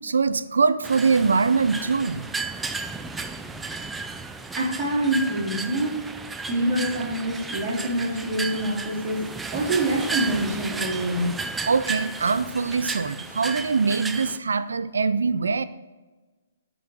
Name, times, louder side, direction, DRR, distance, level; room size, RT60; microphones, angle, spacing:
voice 1, 0.0-2.3 11.7-15.6, right 4 dB, 85° right, 14 dB, 0.5 m, -23 dB
sound 1, 0.8-14.4, right 4 dB, 10° right, 0.4 m, -34 dB
voice 2, 4.6-6.0 6.5-9.2 9.5-11.4, right 1 dB, 25° right, -3 dB, 2.5 m, -25 dB
10.0 x 4.1 x 6.1 m, 1.2 s
hypercardioid pair, 145°, 0 cm